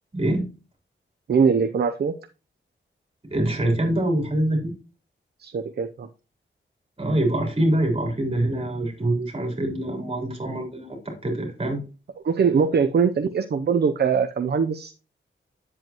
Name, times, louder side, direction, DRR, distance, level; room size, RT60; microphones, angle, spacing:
voice 1, 0.1-0.5 3.3-4.7 7.0-11.8, right 1 dB, 25° right, 1 dB, 3.7 m, -24 dB
voice 2, 1.3-2.1 5.4-6.1 12.2-14.9, right 6 dB, 55° right, 8 dB, 0.6 m, -22 dB
9.3 x 7.7 x 3.0 m, 0.32 s
wide cardioid pair, 175°, 20 cm